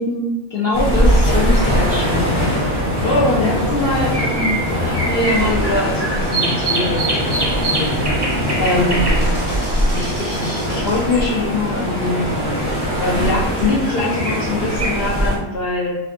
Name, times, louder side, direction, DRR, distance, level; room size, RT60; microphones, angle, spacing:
voice 1, 0.0-2.6 3.0-7.9 8.6-9.0 9.9-12.6 13.0-16.0, left 2 dB, 65° left, -5 dB, 0.6 m, -22 dB
sound 1, 0.7-15.4, equal, 15° left, 0.6 m, -20 dB
sound 2, 3.7-12.1 13.3-14.9, right 2 dB, 25° right, 0.5 m, -26 dB
4.1 x 2.7 x 2.6 m, 1.0 s
omnidirectional pair, 1.6 m